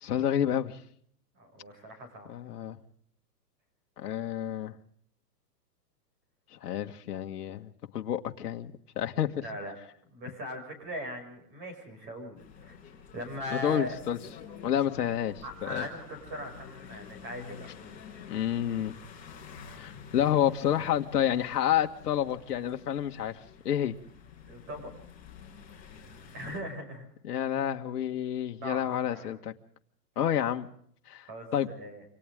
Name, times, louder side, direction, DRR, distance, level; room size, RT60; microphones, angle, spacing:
voice 1, 0.0-0.8 2.3-2.8 4.0-4.7 6.6-8.7 9.0-9.3 13.5-14.2 14.6-15.4 15.7-15.8 18.3-19.0 19.8-23.4 23.6-23.9 27.2-29.5 30.1-30.7 31.1-31.2 31.5-31.7, left 10 dB, 65° left, 5 dB, 1.8 m, -29 dB
voice 2, 1.3-2.3 9.4-9.7 10.1-12.8 13.1-13.9 15.4-18.0 24.5-24.9 26.3-27.1 28.6-29.3 30.2-30.3 31.3-32.0, equal, 25° right, 5 dB, 6.4 m, -40 dB
sound 1, 12.4-26.6, left 7 dB, 15° left, 5.3 m, -49 dB
28.5 x 25.5 x 3.7 m, 0.66 s
hypercardioid pair, 160°, 50 cm